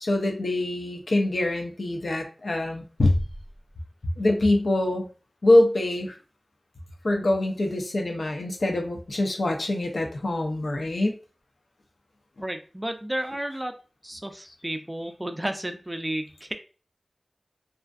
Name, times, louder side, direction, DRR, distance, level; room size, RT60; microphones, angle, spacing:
voice 1, 0.0-3.2 4.2-5.1 5.4-6.1 7.0-11.1, left 1 dB, 85° left, 3 dB, 0.5 m, -24 dB
voice 2, 12.4-13.8 14.0-16.5, right 1 dB, 20° right, 6 dB, 0.4 m, -32 dB
2.4 x 2.4 x 2.3 m, 0.36 s
wide cardioid pair, 60°, 0 cm